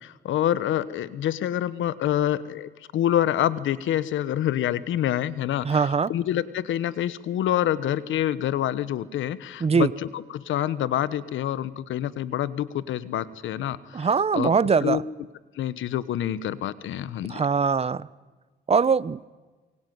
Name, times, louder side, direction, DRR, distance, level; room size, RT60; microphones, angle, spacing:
voice 1, 0.0-14.1 14.3-14.5 14.8-15.0 15.5-17.4, left 11 dB, 75° left, 16 dB, 1.2 m, -27 dB
voice 2, 5.6-6.1 9.6-9.9 13.9-15.0 17.3-18.1 18.7-19.3, right 5 dB, 30° right, 19 dB, 0.9 m, -22 dB
27.0 x 23.5 x 9.5 m, 1.3 s
cardioid pair, 90°, 20 cm